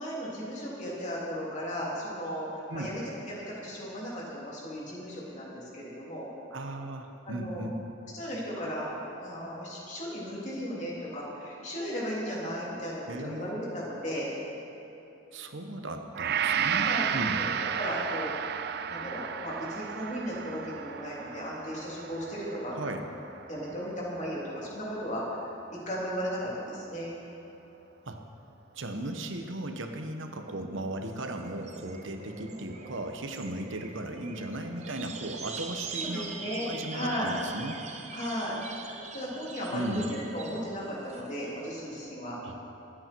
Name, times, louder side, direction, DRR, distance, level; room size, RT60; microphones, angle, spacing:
voice 1, 0.0-3.0 3.3-6.3 7.3-7.6 8.1-14.3 16.7-17.1 17.4-18.3 18.9-22.8 23.5-25.2 25.7-27.2 35.9-37.3 38.1-38.6 39.1-42.4, equal, 40° left, -5 dB, 3.3 m, -36 dB
voice 2, 6.5-7.8 13.1-13.9 15.3-17.4 22.7-23.0 28.1-28.2 28.7-36.3 36.7-37.8 39.7-40.1 42.4-42.6, right 1 dB, 80° right, 5 dB, 1.1 m, -36 dB
Gong, 16.1-24.5 24.9-25.1, right 8 dB, 55° right, 0.5 m, -33 dB
sound 1, 31.0-42.1, right 4 dB, 35° right, 1.0 m, -43 dB
25.0 x 8.7 x 4.6 m, 3.0 s
head